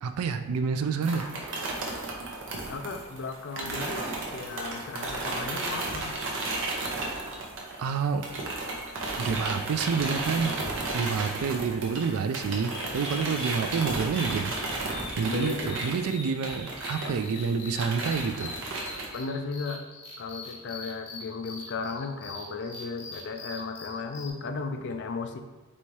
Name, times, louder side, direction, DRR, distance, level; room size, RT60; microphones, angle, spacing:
voice 1, 0.0-1.8 7.8-8.3 9.2-10.6 10.9-14.5 15.2-18.5, right 5 dB, 75° right, 9 dB, 0.3 m, -28 dB
sound 1, 1.0-7.9 8.2-19.1, right 2 dB, 55° right, 0.8 m, -34 dB
voice 2, 2.7-6.2 15.2-16.0 19.1-19.8 20.2-25.4, left 4 dB, 50° left, 6 dB, 0.4 m, -35 dB
sound 2, 12.7-24.3, left 3 dB, 90° left, 1.0 m, -43 dB
4.2 x 3.4 x 3.2 m, 1.2 s
head